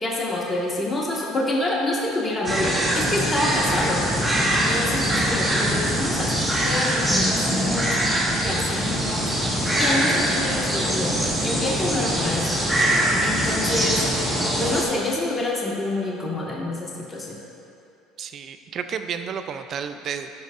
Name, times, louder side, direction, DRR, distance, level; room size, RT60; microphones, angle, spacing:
voice 1, 0.0-4.1 4.5-8.0 8.4-9.3 9.8-11.2 11.4-12.6 13.2-14.0 14.5-17.4, left 1 dB, 20° left, -4 dB, 1.7 m, -27 dB
sound 1, 2.4-14.8, right 1 dB, 10° right, 1.6 m, -23 dB
voice 2, 18.2-20.3, right 7 dB, 50° right, 9 dB, 0.5 m, -31 dB
13.5 x 5.3 x 2.6 m, 2.6 s
supercardioid pair, 80°, 0 cm